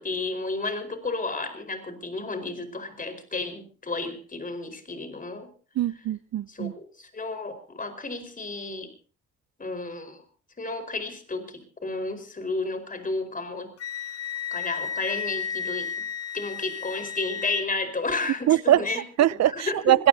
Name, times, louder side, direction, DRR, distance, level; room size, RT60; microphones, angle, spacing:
voice 1, 0.0-5.5 6.5-8.9 9.6-10.2 10.6-13.7 14.5-15.9 16.3-19.0 19.5-19.9, left 3 dB, 25° left, 4.8 m, -32 dB
voice 2, 5.8-6.7 18.5-20.1, right 12 dB, 60° right, 0.7 m, -22 dB
Wind instrument woodwind instrument, 13.8-17.7, left 7 dB, 50° left, 1.5 m, -33 dB
25.5 x 18.0 x 2.8 m
cardioid pair, 90°, 30 cm